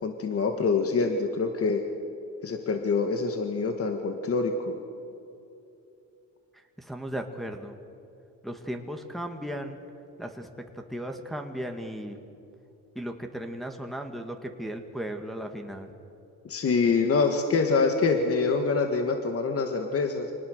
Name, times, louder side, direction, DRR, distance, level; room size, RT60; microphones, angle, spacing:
voice 1, 0.0-1.8 2.4-4.8 16.4-20.3, left 4 dB, 50° left, 5 dB, 2.0 m, -25 dB
voice 2, 6.8-7.8 8.4-9.8 10.2-12.2 13.0-15.9, equal, ahead, 3 dB, 2.0 m, -36 dB
25.5 x 19.5 x 6.8 m, 2.8 s
cardioid pair, 90°, 30 cm